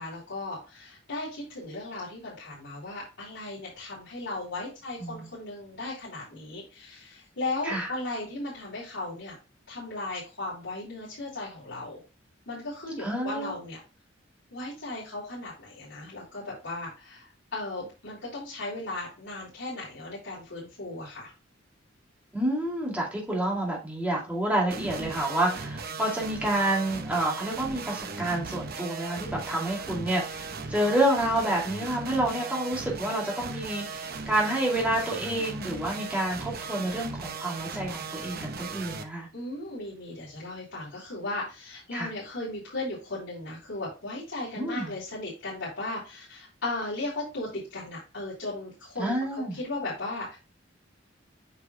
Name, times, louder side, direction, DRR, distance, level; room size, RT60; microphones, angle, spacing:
voice 1, 0.0-9.3 9.7-12.0 12.5-13.8 14.5-21.3 38.6-38.7 39.3-50.4, left 2 dB, 75° left, 3.4 m, -36 dB
voice 2, 13.0-13.5 22.3-39.3 41.9-42.1 44.5-44.9 49.0-49.6, right 1 dB, 10° right, 2.5 m, -29 dB
sound 1, 24.7-39.0, right 4 dB, 50° right, 0.8 m, -37 dB
8.1 x 5.7 x 2.2 m
head